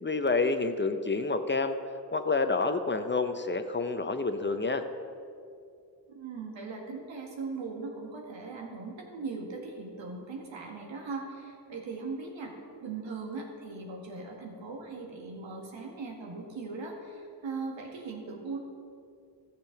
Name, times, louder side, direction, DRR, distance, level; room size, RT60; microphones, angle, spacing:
voice 1, 0.0-1.8 2.1-4.8, left 3 dB, 25° left, 8 dB, 0.7 m, -28 dB
voice 2, 6.1-12.5 12.8-18.6, right 4 dB, 80° right, 1 dB, 2.0 m, -39 dB
13.5 x 7.0 x 5.8 m, 2.4 s
cardioid pair, 65°, 45 cm